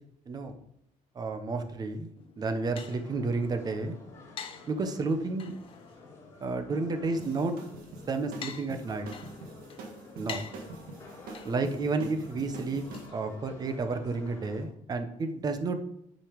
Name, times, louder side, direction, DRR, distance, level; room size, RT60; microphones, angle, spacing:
voice 1, 1.1-4.0 4.7-5.5 6.4-7.6 8.1-9.1 10.2-10.4 11.4-12.9 13.1-15.8, right 3 dB, 25° right, 8 dB, 0.9 m, -31 dB
sound 1, 2.2-13.8, left 7 dB, 40° left, 0.8 m, -48 dB
sound 2, 2.8-14.7, left 3 dB, 20° left, 3.3 m, -51 dB
sound 3, 7.2-13.1, right 3 dB, 85° right, 1.8 m, -45 dB
9.1 x 5.2 x 5.1 m, 0.75 s
cardioid pair, 155°, 15 cm